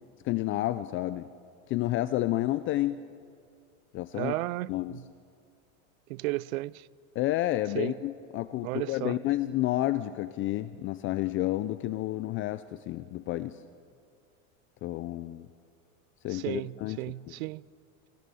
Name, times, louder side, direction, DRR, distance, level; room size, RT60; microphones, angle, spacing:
voice 1, 0.2-1.3 1.7-3.0 3.9-4.3 4.7-5.0 7.2-13.6 14.8-15.5 16.2-17.0, left 15 dB, 30° left, 0.4 m, -30 dB
voice 2, 4.1-5.1 6.1-6.9 7.7-7.9 8.6-9.2 16.3-17.7, right 18 dB, 70° right, 0.5 m, -34 dB
24.5 x 16.5 x 6.9 m
supercardioid pair, 125°, 42 cm